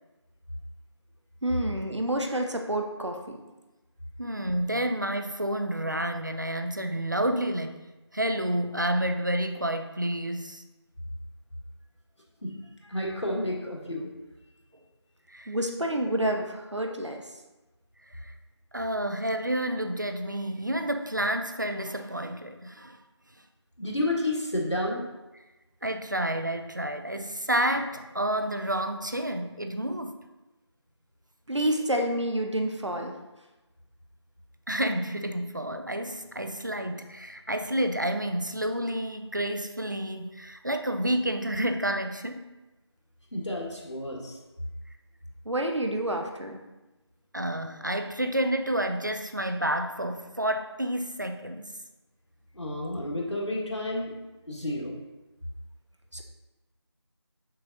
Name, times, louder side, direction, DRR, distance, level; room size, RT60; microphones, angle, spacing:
voice 1, 1.4-3.4 15.5-17.2 31.5-33.2 45.4-46.6 56.1-56.2, right 1 dB, 85° right, 3 dB, 1.0 m, -28 dB
voice 2, 4.2-7.9 8.1-10.6 15.3-15.6 18.1-18.3 18.7-23.0 25.8-30.2 34.7-42.5 47.3-51.8, right 1 dB, 45° right, 7 dB, 0.4 m, -29 dB
voice 3, 12.8-14.1 23.8-25.1 43.3-44.4 52.5-54.1 54.5-54.9, left 1 dB, 85° left, -2 dB, 1.7 m, -30 dB
6.5 x 5.9 x 2.7 m, 1.1 s
figure-of-eight pair, 175°, 15 cm